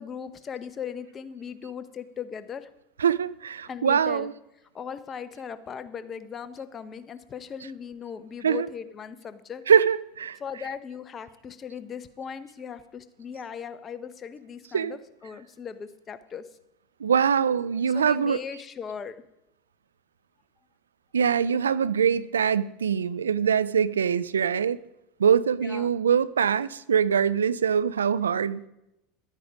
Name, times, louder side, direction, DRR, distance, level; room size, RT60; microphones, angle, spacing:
voice 1, 0.0-2.7 3.7-4.3 4.7-9.6 10.4-16.5 17.9-19.2 25.6-26.0, left 7 dB, 35° left, 1.0 m, -38 dB
voice 2, 3.0-4.3 8.4-8.7 9.7-10.4 14.7-15.0 17.0-18.4 21.1-24.8 25.2-28.7, right 7 dB, 85° right, 0.4 m, -23 dB
12.0 x 8.9 x 5.1 m
hypercardioid pair, 80°, 0 cm